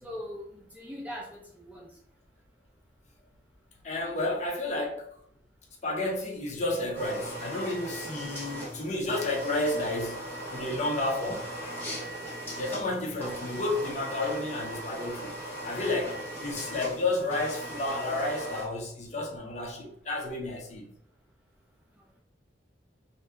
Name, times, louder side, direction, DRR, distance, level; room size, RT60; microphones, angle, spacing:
voice 1, 0.0-1.9, left 1 dB, 10° right, -4 dB, 0.6 m, -41 dB
voice 2, 3.8-5.0 5.8-10.2 10.5-11.4 12.6-15.3 15.6-20.9, left 2 dB, 40° left, 0 dB, 0.5 m, -31 dB
sound 1, 6.9-18.6, right 1 dB, 10° left, 0.9 m, -38 dB
2.7 x 2.1 x 3.3 m, 0.69 s
head